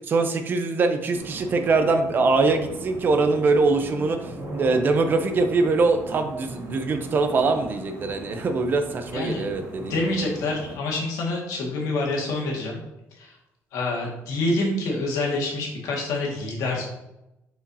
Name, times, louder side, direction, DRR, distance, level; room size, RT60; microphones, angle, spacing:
voice 1, 0.1-9.9, right 3 dB, 35° right, 7 dB, 0.6 m, -23 dB
sound 1, 1.1-10.8, right 1 dB, 55° right, 1.9 m, -39 dB
voice 2, 9.1-9.5 9.8-12.8 13.2-13.3 13.7-16.8, left 2 dB, 90° left, -1 dB, 1.8 m, -27 dB
7.1 x 4.9 x 2.7 m, 0.91 s
cardioid pair, 160°, 6 cm